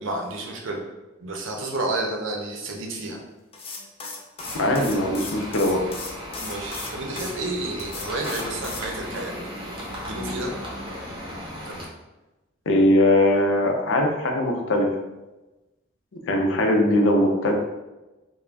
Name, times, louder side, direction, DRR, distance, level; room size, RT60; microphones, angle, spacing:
voice 1, 0.0-0.8 1.2-3.2 6.4-9.3 10.0-10.5 11.8-11.9, right 2 dB, 85° right, 1 dB, 0.6 m, -30 dB
sound 1, 3.5-7.3 7.8-8.9, left 4 dB, 30° left, 0.3 m, -36 dB
sound 2, 4.4-11.9, equal, 25° right, 0.6 m, -36 dB
voice 2, 4.5-5.8 12.7-14.9 16.3-17.5, left 1 dB, 85° left, 2 dB, 0.5 m, -20 dB
2.4 x 2.1 x 3.2 m, 1.1 s
head